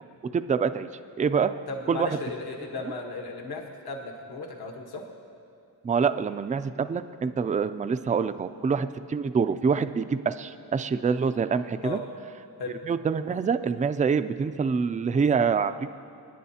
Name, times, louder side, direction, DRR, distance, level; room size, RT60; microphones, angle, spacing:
voice 1, 0.3-0.9 1.2-1.5 1.9-2.2 5.8-12.0 12.9-15.9, right 6 dB, 20° right, 11 dB, 0.3 m, -26 dB
voice 2, 1.7-5.0 11.8-12.0 12.6-12.8, left 3 dB, 70° left, 2 dB, 1.3 m, -35 dB
28.5 x 10.0 x 2.8 m, 2.7 s
wide cardioid pair, 135°, 40 cm